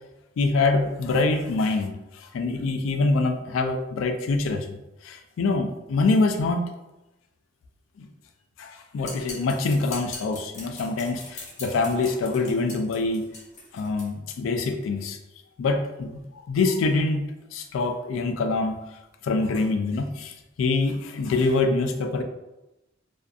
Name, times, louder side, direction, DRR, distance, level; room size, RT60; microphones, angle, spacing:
voice 1, 0.4-6.6 8.0-8.1 8.6-13.3 13.7-15.2 15.6-17.3 17.5-18.8 19.2-22.2, left 3 dB, 90° left, 6 dB, 0.3 m, -25 dB
sound 1, 9.0-14.1, left 3 dB, 40° left, 0.7 m, -41 dB
2.5 x 2.4 x 2.3 m, 0.96 s
head